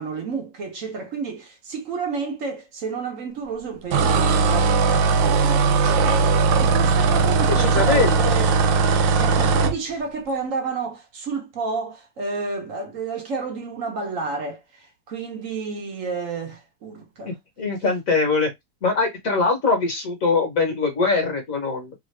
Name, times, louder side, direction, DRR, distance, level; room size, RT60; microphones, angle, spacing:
voice 1, 0.0-8.5 9.2-17.3, right 4 dB, 55° right, 0.9 m, -31 dB
sound 1, 3.9-9.8, right 4 dB, 80° right, 1.3 m, -19 dB
voice 2, 7.5-8.1 17.6-18.5 18.8-21.9, left 4 dB, 55° left, 1.2 m, -22 dB
3.2 x 2.5 x 3.1 m
omnidirectional pair, 2.0 m